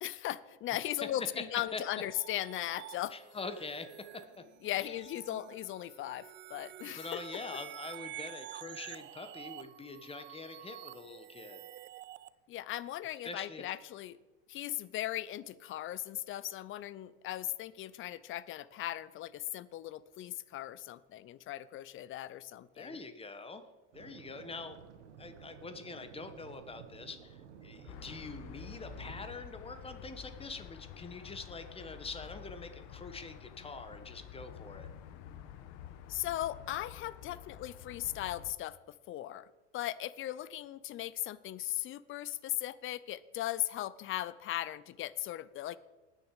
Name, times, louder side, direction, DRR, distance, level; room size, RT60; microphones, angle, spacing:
voice 1, 0.0-3.1 4.6-7.4 12.5-14.2 14.5-23.0 36.1-39.5 39.7-45.8, left 13 dB, 35° left, 18 dB, 0.6 m, -38 dB
sound 1, 1.6-12.3, right 14 dB, 30° right, 0.5 m, -49 dB
voice 2, 3.1-4.4 4.8-5.0 7.0-11.6 13.2-13.6 22.7-23.6 23.9-24.8 25.2-34.9, left 3 dB, 15° left, 9 dB, 1.4 m, -44 dB
sound 2, 23.9-29.3, right 8 dB, 80° right, 1.5 m, -53 dB
sound 3, 27.9-38.5, left 9 dB, 60° left, 1.3 m, -49 dB
19.5 x 6.6 x 4.9 m, 1.2 s
hypercardioid pair, 100°, 35 cm